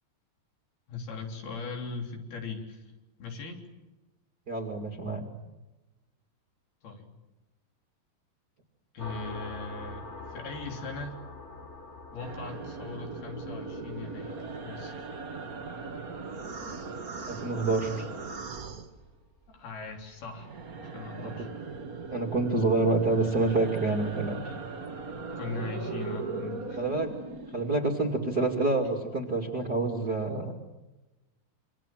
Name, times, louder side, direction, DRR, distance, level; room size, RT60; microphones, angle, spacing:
voice 1, 0.9-2.9 3.2-3.6 6.8-7.1 8.9-11.2 12.1-15.1 19.5-20.5 20.9-21.5 25.4-26.9, left 4 dB, 65° left, 3 dB, 5.4 m, -39 dB
voice 2, 4.5-5.2 17.3-18.1 21.2-21.3 22.1-24.5 26.8-27.1 27.5-30.5, right 3 dB, 30° right, 2 dB, 2.4 m, -27 dB
sound 1, 9.0-18.2, left 3 dB, 30° left, 1.3 m, -46 dB
sound 2, 12.2-19.5 19.8-27.8, right 4 dB, 60° right, 0.9 m, -39 dB
27.5 x 26.0 x 7.6 m, 1.0 s
omnidirectional pair, 4.9 m